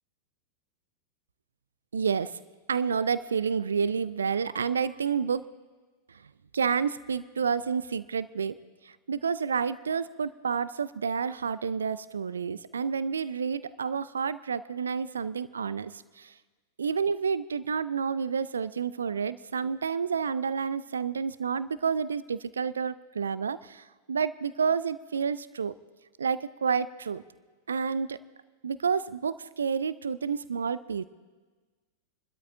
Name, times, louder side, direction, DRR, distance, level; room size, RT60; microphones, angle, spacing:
voice 1, 1.9-2.3 2.7-5.4 6.5-8.5 8.9-16.3 16.8-25.7 26.2-27.2 27.7-28.2 28.6-31.0, right 6 dB, 70° right, 17 dB, 0.3 m, -29 dB
29.5 x 12.5 x 2.6 m, 1.3 s
figure-of-eight pair, 90°, 0 cm